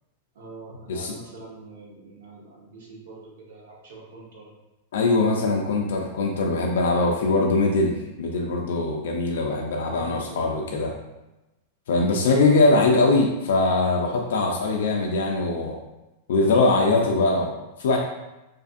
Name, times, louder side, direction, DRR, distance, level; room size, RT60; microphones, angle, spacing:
voice 1, 0.3-4.5 9.8-10.9, right 2 dB, 75° right, -3 dB, 0.8 m, -44 dB
voice 2, 4.9-10.9 11.9-15.8 16.3-18.0, left 3 dB, 80° left, 0 dB, 0.4 m, -22 dB
2.5 x 2.5 x 2.4 m, 0.98 s
supercardioid pair, 165°, 0 cm